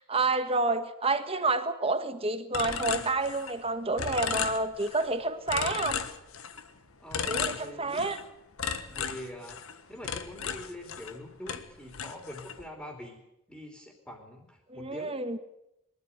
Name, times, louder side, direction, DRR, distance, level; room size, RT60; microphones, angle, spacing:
voice 1, 0.0-6.0 7.3-8.2 14.7-15.4, right 3 dB, 25° right, 9 dB, 1.4 m, -29 dB
sound 1, 2.5-3.7 4.0-5.1 5.5-6.7 7.1-8.2 8.6-11.2 11.5-12.6, left 7 dB, 70° left, 1.5 m, -35 dB
voice 2, 7.0-8.0 8.9-9.6 9.9-13.2 13.5-15.2, left 1 dB, 5° left, 2 dB, 3.1 m, -44 dB
22.5 x 13.5 x 9.8 m, 0.87 s
head